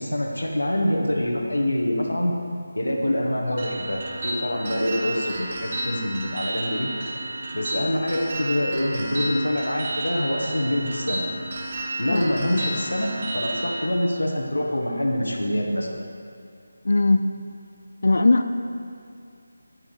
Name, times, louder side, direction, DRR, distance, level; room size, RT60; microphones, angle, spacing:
voice 1, 0.0-2.4 2.7-6.9 7.5-11.3 12.0-16.0, left 1 dB, 90° left, 1 dB, 1.3 m, -25 dB
sound 1, 3.6-13.9, right 1 dB, 40° right, 1.0 m, -32 dB
voice 2, 16.8-17.3 18.0-18.5, left 2 dB, 65° left, 8 dB, 0.4 m, -19 dB
9.6 x 8.9 x 3.2 m, 2.4 s
figure-of-eight pair, 160°, 0 cm